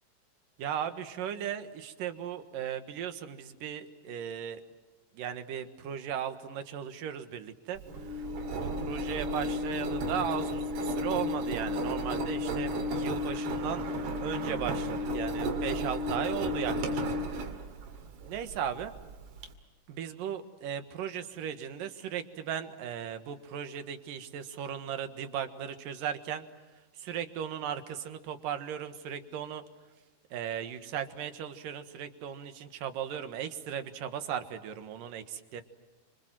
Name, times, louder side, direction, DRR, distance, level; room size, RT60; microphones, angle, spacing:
voice 1, 0.6-4.6 5.1-8.3 8.6-13.8 14.2-17.1 18.2-18.9 19.9-26.4 27.0-29.6 30.3-35.6, right 9 dB, 65° right, 9 dB, 3.0 m, -37 dB
Engine, 7.8-19.5, equal, 80° right, 4.3 m, -33 dB
29.5 x 26.0 x 7.6 m, 1.2 s
omnidirectional pair, 4.6 m